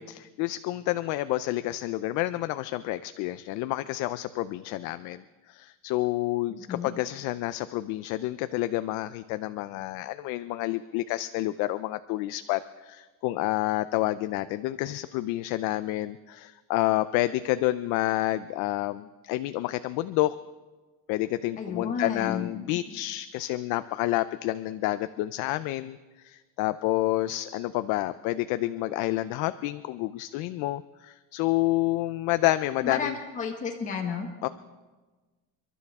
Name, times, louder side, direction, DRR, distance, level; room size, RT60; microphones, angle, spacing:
voice 1, 0.0-20.4 21.1-33.2 34.4-34.5, left 16 dB, 60° left, 12 dB, 0.5 m, -29 dB
voice 2, 6.5-6.9 21.6-22.5 22.7-22.8 32.8-34.3, left 6 dB, 20° left, 1 dB, 1.2 m, -32 dB
29.5 x 12.0 x 3.6 m, 1.3 s
cardioid pair, 175°, 35 cm